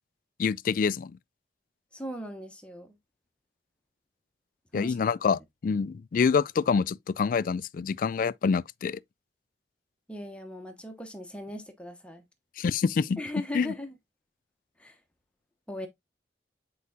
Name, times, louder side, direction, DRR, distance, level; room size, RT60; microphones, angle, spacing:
voice 1, 0.4-1.2 4.7-9.0 12.6-13.2 13.5-13.7, left 5 dB, 50° left, 0.3 m, -26 dB
voice 2, 1.9-3.0 4.7-5.0 10.1-12.2 13.2-13.9 14.8-15.0 15.7-15.9, left 1 dB, 5° left, 0.9 m, -39 dB
8.3 x 4.6 x 2.7 m
head